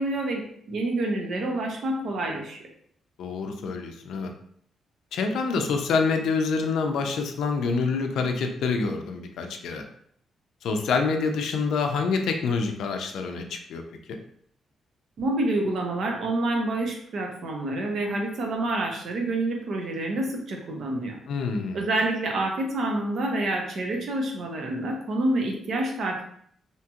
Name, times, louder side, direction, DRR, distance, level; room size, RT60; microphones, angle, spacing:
voice 1, 0.0-2.6 15.2-21.2 21.7-26.2, right 2 dB, 60° right, 1 dB, 0.6 m, -28 dB
voice 2, 3.2-4.3 5.1-9.8 10.6-13.8 14.1-14.2 21.3-21.8, left 4 dB, 75° left, 4 dB, 0.4 m, -26 dB
2.8 x 2.8 x 2.3 m, 0.65 s
cardioid pair, 125°, 0 cm